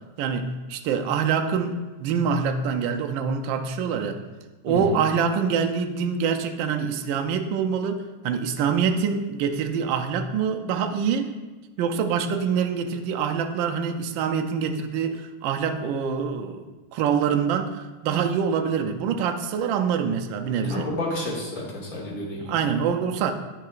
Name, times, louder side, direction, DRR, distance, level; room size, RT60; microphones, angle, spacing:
voice 1, 0.2-4.2 4.6-11.3 11.8-20.9 22.4-23.3, right 6 dB, 75° right, 6 dB, 1.3 m, -25 dB
voice 2, 4.7-5.0 20.7-22.5, left 1 dB, 45° left, -4 dB, 1.9 m, -30 dB
8.9 x 5.7 x 2.4 m, 1.2 s
omnidirectional pair, 2.3 m